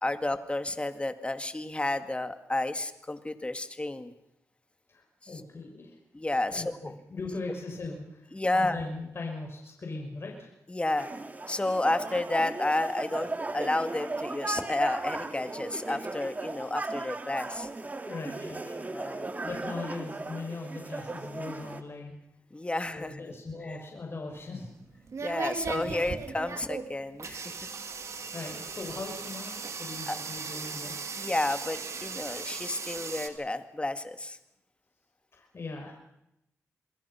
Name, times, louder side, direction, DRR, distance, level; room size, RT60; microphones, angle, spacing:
voice 1, 0.0-4.1 6.1-6.6 8.3-8.8 10.7-11.1 11.5-17.7 18.9-19.3 22.5-23.1 23.7-23.8 25.2-27.5 30.1-30.2 31.2-34.4, left 2 dB, 20° left, 9 dB, 2.1 m, -31 dB
voice 2, 4.9-6.0 6.5-10.5 18.0-18.9 19.2-22.1 22.9-24.7 25.7-26.2 28.1-31.0 35.3-36.0, left 3 dB, 50° left, 0 dB, 6.1 m, -39 dB
sound 1, 11.0-21.8, right 2 dB, 30° right, 2.4 m, -37 dB
sound 2, 24.3-33.3, right 5 dB, 65° right, 2.7 m, -38 dB
28.0 x 22.0 x 5.8 m, 0.84 s
cardioid pair, 70°, 5 cm